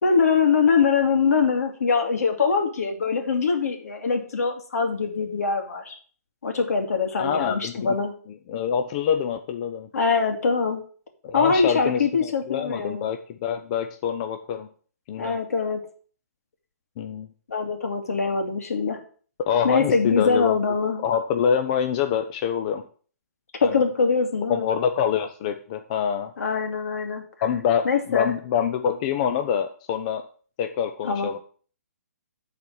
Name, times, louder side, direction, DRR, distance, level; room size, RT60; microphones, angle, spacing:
voice 1, 0.0-5.9 6.4-8.1 9.9-10.8 11.3-13.1 15.2-15.8 17.5-19.0 19.6-21.1 23.6-24.7 26.4-27.2 27.8-28.3 31.0-31.3, left 5 dB, 70° left, 4 dB, 2.3 m, -23 dB
voice 2, 7.2-7.7 8.5-9.9 11.2-14.7 15.1-15.4 17.0-17.3 19.5-20.6 21.0-22.8 23.6-23.8 24.5-26.3 27.4-30.2 30.6-31.4, left 8 dB, 25° left, 6 dB, 0.5 m, -25 dB
10.0 x 4.2 x 6.2 m, 0.43 s
hypercardioid pair, 165°, 9 cm